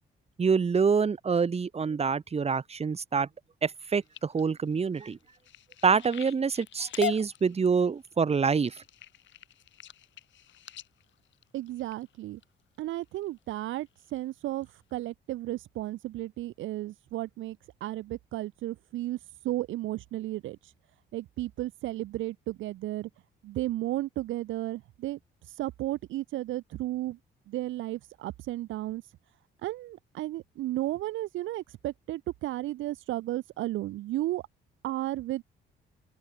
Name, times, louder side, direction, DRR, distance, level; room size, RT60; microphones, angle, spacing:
voice 1, 0.4-3.3 3.6-5.2 5.8-8.8, right 5 dB, 30° right, 1.2 m, -26 dB
sound 1, 3.8-12.4 13.0-13.4 13.8-14.2 14.6-14.7 15.0-15.1, left 12 dB, 70° left, 1.5 m, -42 dB
voice 2, 11.5-12.4 12.8-19.2 19.4-20.7 21.1-23.1 23.4-25.2 25.5-27.2 27.5-29.0 29.6-34.4 34.8-35.4, right 15 dB, 75° right, 0.6 m, -34 dB
open air
cardioid pair, 90°, 20 cm